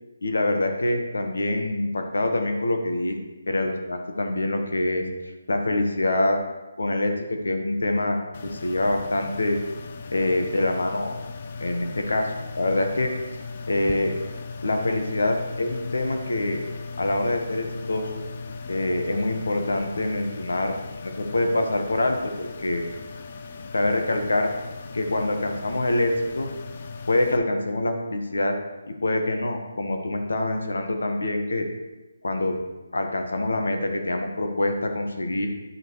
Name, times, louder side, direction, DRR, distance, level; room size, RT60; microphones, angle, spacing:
voice 1, 0.2-3.2 3.5-5.0 5.5-6.4 6.8-8.2 8.5-9.6 10.1-11.1 11.6-13.1 13.7-14.1 14.6-16.6 17.0-18.2 18.7-20.7 21.0-22.8 23.7-24.5 24.9-26.5 27.1-28.5 29.0-31.7 32.2-32.6 32.9-35.5, left 2 dB, 85° left, 4 dB, 1.3 m, -25 dB
sound 1, 8.3-27.4, left 4 dB, 40° left, 0.5 m, -38 dB
10.5 x 5.1 x 3.1 m, 1.1 s
hypercardioid pair, 160°, 0 cm